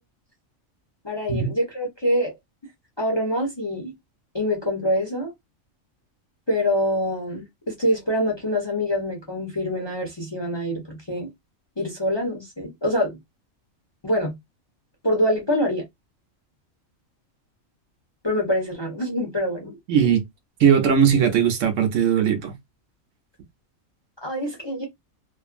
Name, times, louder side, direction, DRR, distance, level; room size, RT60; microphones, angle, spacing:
voice 1, 1.0-2.4 3.0-3.9 4.3-5.3 6.5-11.3 11.8-13.2 14.0-14.4 15.0-15.8 18.2-19.7 24.2-24.9, equal, 25° left, 0.6 m, -25 dB
voice 2, 19.9-20.3 20.6-22.5, right 7 dB, 70° right, 1.0 m, -19 dB
2.5 x 2.5 x 2.4 m
omnidirectional pair, 1.4 m